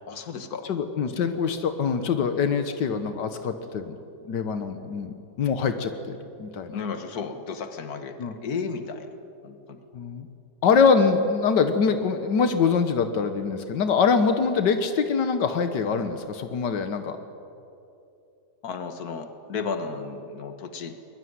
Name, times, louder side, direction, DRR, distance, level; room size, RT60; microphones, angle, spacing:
voice 1, 0.1-0.7 6.7-9.1 9.4-9.8 18.6-20.9, left 5 dB, 65° left, 8 dB, 2.0 m, -33 dB
voice 2, 0.6-4.0 4.2-6.8 8.2-8.3 9.9-10.3 10.6-17.2, left 5 dB, 90° left, 8 dB, 1.8 m, -24 dB
23.0 x 21.5 x 9.5 m, 2.8 s
omnidirectional pair, 1.8 m